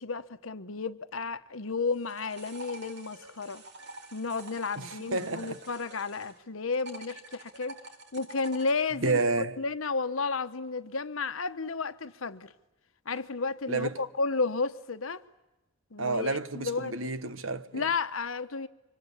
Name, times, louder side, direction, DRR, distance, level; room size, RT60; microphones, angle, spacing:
voice 1, 0.0-3.6 4.1-7.8 8.1-9.2 9.6-12.5 13.1-15.2 15.9-16.9 17.7-18.7, left 4 dB, 90° left, 1.1 m, -32 dB
sound 1, 1.8-6.4 6.7-8.7, right 2 dB, 60° right, 2.6 m, -47 dB
voice 2, 4.8-5.6 9.0-9.6 13.7-14.0 16.0-17.9, right 3 dB, 75° right, 1.2 m, -30 dB
26.0 x 25.0 x 8.4 m
head